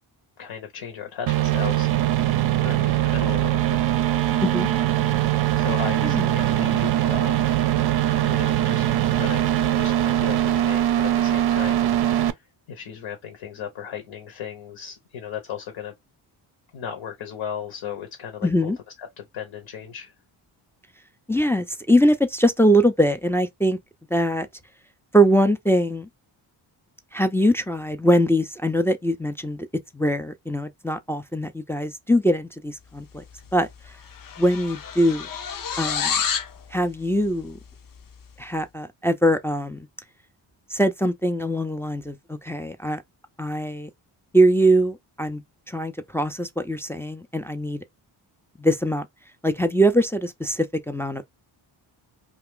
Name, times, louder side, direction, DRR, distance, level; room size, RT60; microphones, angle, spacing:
voice 1, 0.4-1.9 2.6-3.8 5.6-7.5 8.2-15.9 16.7-18.7 19.0-20.1, left 8 dB, 65° left, 1.0 m, -36 dB
sound 1, 1.3-12.3, right 12 dB, 55° right, 0.5 m, -21 dB
voice 2, 18.4-18.8 21.3-23.8 24.1-24.5 25.1-26.1 27.1-29.7 29.9-33.2 33.5-33.7 34.4-35.3 35.8-36.2 36.7-37.6 38.4-39.9 40.7-43.0 43.4-43.9 44.3-47.8 48.6-49.1 49.4-51.2, equal, 5° left, 0.4 m, -22 dB
sound 2, 33.4-33.6 33.8-36.6, left 7 dB, 45° left, 0.6 m, -28 dB
2.5 x 2.4 x 3.6 m
cardioid pair, 60°, 49 cm